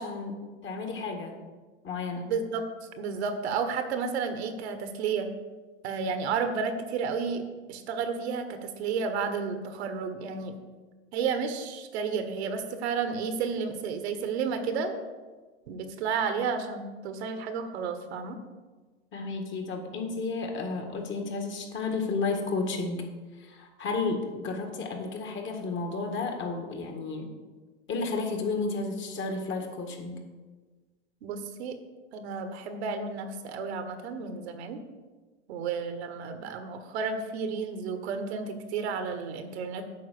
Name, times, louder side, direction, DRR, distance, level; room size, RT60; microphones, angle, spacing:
voice 1, 0.0-1.3 1.8-2.3 19.1-23.1 23.4-27.3 27.9-30.2, left 3 dB, 35° left, 4 dB, 1.9 m, -32 dB
voice 2, 2.3-2.6 3.0-5.3 5.8-7.4 7.7-10.5 11.1-14.9 15.7-18.4 31.2-31.8 32.1-34.8 35.5-39.8, right 5 dB, 70° right, 8 dB, 1.3 m, -32 dB
8.5 x 5.4 x 6.8 m, 1.3 s
hypercardioid pair, 110°, 34 cm